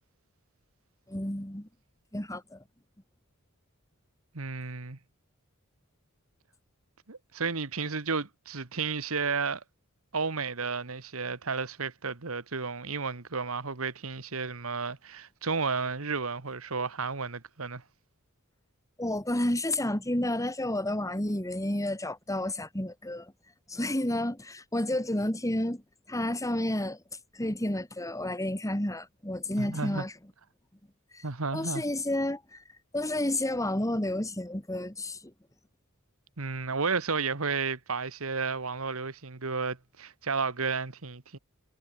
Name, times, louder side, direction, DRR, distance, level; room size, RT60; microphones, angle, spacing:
voice 1, 1.1-1.7 2.1-2.6 19.0-23.3 23.7-25.8 26.1-27.0 27.3-30.1 31.1-31.2 31.5-32.6 32.9-35.3, left 1 dB, 15° left, 3.0 m, -30 dB
voice 2, 4.3-5.0 7.1-9.6 10.1-17.8 29.6-30.0 31.2-31.8 36.4-41.4, right 4 dB, 75° right, 1.6 m, -32 dB
head